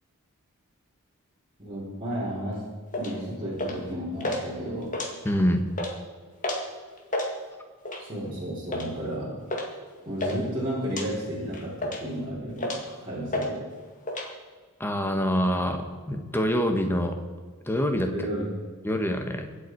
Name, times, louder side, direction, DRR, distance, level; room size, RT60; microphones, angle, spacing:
voice 1, 1.6-2.7 3.0-4.9 8.0-9.4 10.1-13.7 18.1-18.5, equal, 25° right, -9 dB, 4.0 m, -33 dB
sound 1, 2.9-3.1 3.6-3.9 4.2-4.4 4.8-5.4 5.7-5.9 6.4-6.7 7.0-7.3 7.9-8.1 8.7-8.9 9.5-9.7 9.9-10.4 10.9-11.1 11.5-12.1 12.6-12.9 13.3-13.5 13.8-14.3, left 1 dB, 35° left, 2.1 m, -30 dB
voice 2, 5.2-5.6 14.8-17.2 17.7-18.1 18.8-19.5, equal, 10° left, 4 dB, 1.4 m, -25 dB
24.0 x 8.2 x 4.6 m, 1.5 s
head